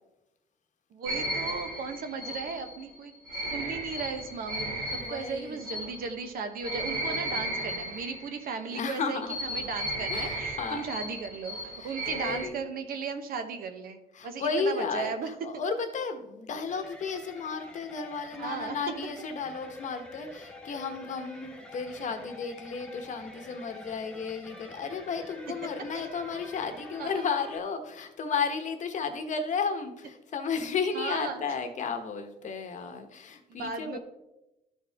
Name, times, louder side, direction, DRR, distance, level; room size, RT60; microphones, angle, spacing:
voice 1, 0.9-3.1 3.5-15.3 18.3-18.8 25.9-26.0 27.0-27.2 30.9-31.5 33.6-34.0, right 5 dB, 60° right, 8 dB, 0.9 m, -36 dB
sound 1, 1.0-8.6 9.2-12.5, right 1 dB, 80° right, 2.2 m, -35 dB
voice 2, 4.9-5.6 8.7-9.4 10.1-11.0 11.8-12.6 14.1-34.0, left 5 dB, 45° left, 7 dB, 1.0 m, -33 dB
sound 2, 16.7-27.6, left 1 dB, 5° left, 1.0 m, -47 dB
12.5 x 4.5 x 3.5 m, 0.94 s
cardioid pair, 110°, 17 cm